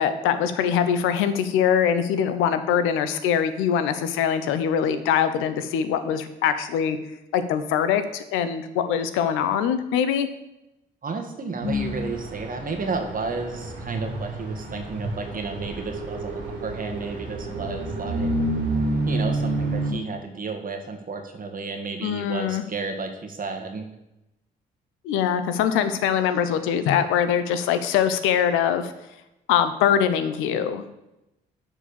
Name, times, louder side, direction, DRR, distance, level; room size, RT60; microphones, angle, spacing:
voice 1, 0.0-7.0 7.3-10.3 22.0-22.6 25.0-28.9 29.5-30.8, left 8 dB, 75° left, 11 dB, 0.7 m, -23 dB
voice 2, 11.0-18.3 19.1-23.9, right 4 dB, 40° right, 4 dB, 1.6 m, -32 dB
sound 1, 11.6-19.9, right 1 dB, 70° right, 2.6 m, -29 dB
6.9 x 4.8 x 7.0 m, 0.90 s
hypercardioid pair, 50°, 21 cm